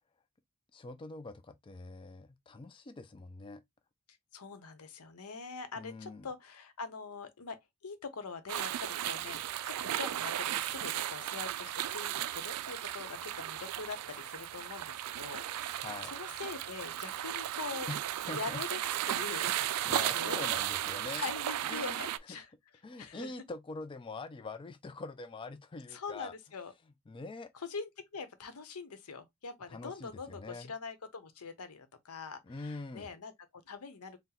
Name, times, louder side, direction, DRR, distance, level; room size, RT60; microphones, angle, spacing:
voice 1, 0.7-3.6 5.8-6.3 15.8-16.1 17.9-18.0 18.3-18.6 19.9-21.2 21.7-22.1 22.8-26.3 27.1-27.5 29.7-30.7 32.5-33.1, left 3 dB, 25° left, 0.3 m, -44 dB
voice 2, 4.3-17.9 18.3-18.8 19.1-20.5 21.2-22.5 23.0-23.3 25.9-26.7 27.5-33.3 33.7-34.2, left 4 dB, 80° left, 0.8 m, -43 dB
sound 1, 8.5-22.2, right 12 dB, 85° right, 0.3 m, -35 dB
4.3 x 2.1 x 3.9 m
head